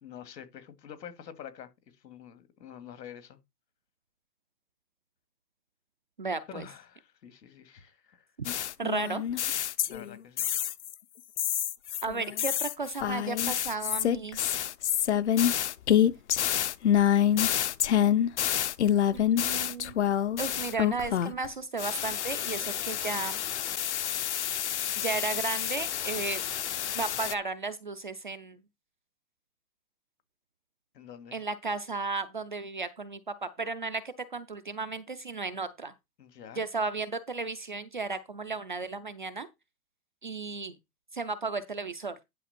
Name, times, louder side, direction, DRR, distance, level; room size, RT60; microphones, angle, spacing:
voice 1, 0.0-1.7 2.0-3.4 6.5-8.3 9.9-10.5 30.9-31.4 36.2-36.6, left 8 dB, 85° left, 2.5 m, -47 dB
voice 2, 6.2-6.7 8.8-9.5 12.0-14.4 19.1-19.9 20.4-23.4 25.0-26.4 26.9-28.6 31.3-33.2 33.6-34.0 34.3-35.9 36.6-39.5 40.2-40.7 41.1-42.1, right 4 dB, 30° right, 0.5 m, -34 dB
sound 1, 8.4-10.9 11.4-21.5 21.8-27.3, left 10 dB, 45° left, 0.6 m, -27 dB
11.0 x 5.7 x 4.3 m
hypercardioid pair, 180°, 48 cm